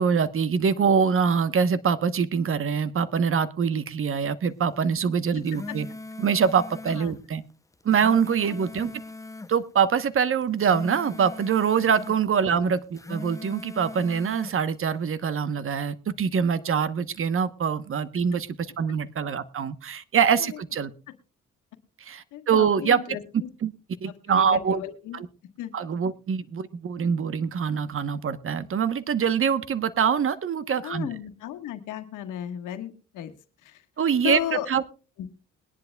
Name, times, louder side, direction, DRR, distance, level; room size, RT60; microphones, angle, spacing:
voice 1, 0.0-5.9 6.2-7.4 7.8-8.9 9.5-20.9 22.0-23.0 23.6-23.7 24.0-24.8 25.1-25.3 25.7-31.1 34.0-34.8, right 7 dB, 45° right, 14 dB, 1.0 m, -24 dB
sound 1, 5.3-7.1 7.7-9.5 10.4-12.2 12.8-14.6, left 2 dB, 10° left, 0.5 m, -40 dB
voice 2, 8.4-8.9 12.5-12.6 20.4-20.5 22.3-23.5 24.3-25.2 25.6-25.7 30.8-33.3 33.6-33.8 34.2-34.7 35.2-35.3, left 11 dB, 90° left, 7 dB, 1.5 m, -34 dB
21.5 x 10.5 x 2.3 m, 0.36 s
cardioid pair, 90°, 30 cm